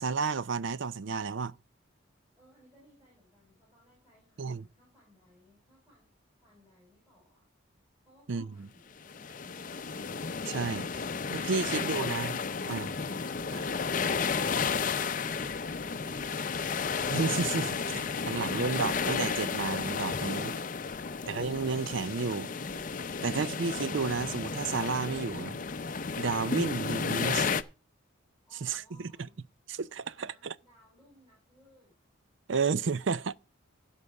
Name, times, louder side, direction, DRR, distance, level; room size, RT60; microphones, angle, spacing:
voice 1, 0.0-1.5 4.4-4.6 8.3-8.5 10.5-10.9 11.3-12.4 12.7-12.9 17.1-20.5 21.3-22.5 23.2-25.6 26.2-27.5 28.6-28.8 29.7-30.5 32.5-33.3, right 5 dB, 65° right, 0.5 m, -31 dB
voice 2, 2.4-7.5 8.0-9.9 28.4-29.4 30.1-32.0 32.5-32.8, equal, 10° right, 6.1 m, -62 dB
sound 1, 9.0-27.6, left 5 dB, 40° left, 0.5 m, -33 dB
sound 2, 12.9-20.2, right 2 dB, 45° right, 1.0 m, -55 dB
16.0 x 5.6 x 4.7 m
head